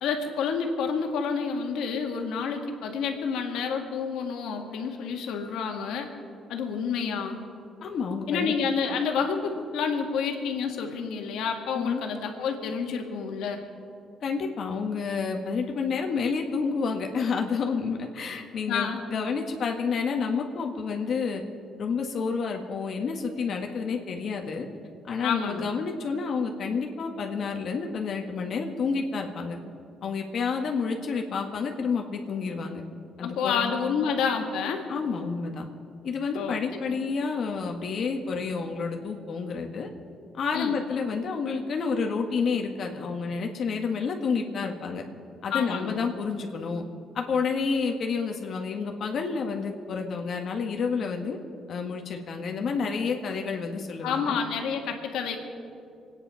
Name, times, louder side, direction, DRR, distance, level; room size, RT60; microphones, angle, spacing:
voice 1, 0.0-6.1 6.5-7.4 8.3-13.6 18.7-19.0 25.2-25.7 33.2-34.9 36.3-37.0 40.5-40.8 45.5-46.0 54.0-55.4, left 6 dB, 85° left, 3 dB, 1.9 m, -29 dB
voice 2, 7.8-8.5 11.7-12.0 14.2-21.4 21.8-24.7 25.1-29.6 30.0-32.8 33.2-33.7 34.9-35.6 36.0-39.9 40.3-45.0 45.4-46.8 47.1-51.4 51.7-54.4, left 5 dB, 60° left, 2 dB, 1.6 m, -29 dB
24.5 x 9.8 x 5.7 m, 2.4 s
cardioid pair, 90°, 0 cm